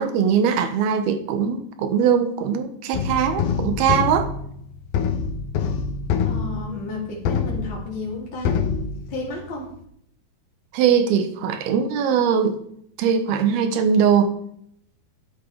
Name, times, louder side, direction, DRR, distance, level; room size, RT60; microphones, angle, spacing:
voice 1, 0.0-4.3 10.7-12.6 13.0-14.3, right 7 dB, 75° right, 3.0 m, -21 dB
sound 1, 2.9-8.2 8.5-9.5, left 6 dB, 70° left, 2.7 m, -25 dB
voice 2, 6.2-8.5 9.1-9.7, left 2 dB, 30° left, 4.1 m, -32 dB
13.0 x 10.5 x 4.7 m
omnidirectional pair, 4.6 m